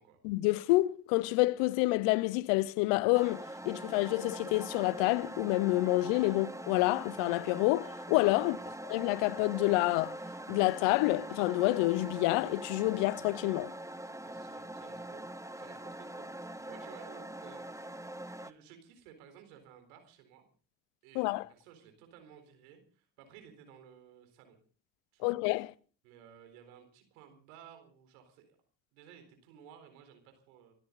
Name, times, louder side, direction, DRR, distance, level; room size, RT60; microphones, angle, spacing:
voice 1, 0.2-8.6 8.9-10.2 10.5-13.7 21.2-21.4 25.2-25.7, left 20 dB, 85° left, 0.8 m, -28 dB
sound 1, 3.1-18.5, right 1 dB, 5° right, 1.5 m, -43 dB
voice 2, 8.3-8.7 14.2-15.2 15.5-20.4 21.0-24.6 25.1-25.4 26.0-28.6 28.9-30.7, right 8 dB, 90° right, 4.1 m, -56 dB
26.5 x 13.0 x 4.0 m
hypercardioid pair, 45°, 43 cm